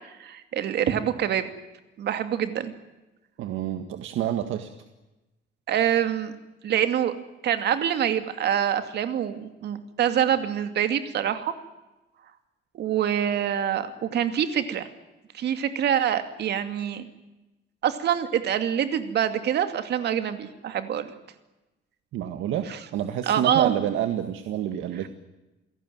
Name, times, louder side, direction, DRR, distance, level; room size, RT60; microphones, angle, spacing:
voice 1, 0.2-1.5 2.0-2.7 5.7-6.3 6.6-7.1 7.4-11.5 12.7-14.9 15.3-17.1 17.8-21.1 23.3-23.7, right 9 dB, 55° right, 9 dB, 2.5 m, -25 dB
voice 2, 3.4-4.7 22.1-22.7 22.9-25.1, right 11 dB, 80° right, 7 dB, 1.8 m, -28 dB
28.5 x 17.5 x 9.4 m, 1.0 s
cardioid pair, 160°, 20 cm